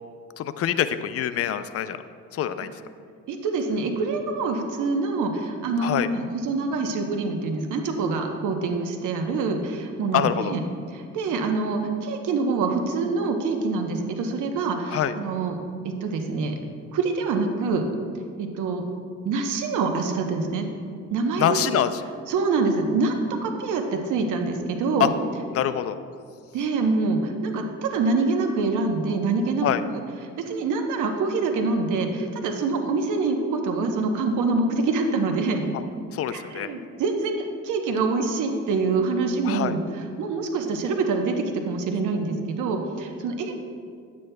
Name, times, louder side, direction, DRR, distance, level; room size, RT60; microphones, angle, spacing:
voice 1, 0.4-2.0 2.3-2.7 5.8-6.1 10.1-10.5 14.9-15.1 21.4-22.0 25.0-25.1 25.5-26.0 29.6-29.8 36.1-36.7 39.4-39.8, left 10 dB, 50° left, 12 dB, 0.4 m, -24 dB
voice 2, 3.3-10.6 10.9-15.6 15.8-16.6 16.9-17.8 18.4-18.8 19.2-20.7 21.1-21.7 22.3-23.2 23.4-25.1 26.5-29.7 30.4-35.7 36.3-43.5, right 3 dB, 80° right, 4 dB, 0.9 m, -25 dB
9.4 x 8.4 x 2.2 m, 2.2 s
cardioid pair, 90°, 30 cm